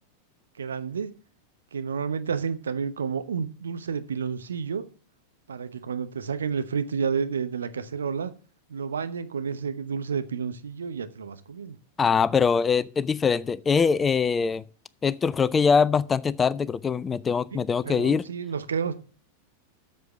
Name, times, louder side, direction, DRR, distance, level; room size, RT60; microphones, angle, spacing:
voice 1, 0.6-1.2 1.7-4.9 5.5-8.3 8.7-11.8 17.5-19.0, right 6 dB, 70° right, 0.9 m, -30 dB
voice 2, 12.0-14.6 15.0-18.2, left 6 dB, 20° left, 0.4 m, -23 dB
7.9 x 6.8 x 6.8 m
figure-of-eight pair, 90°, 0 cm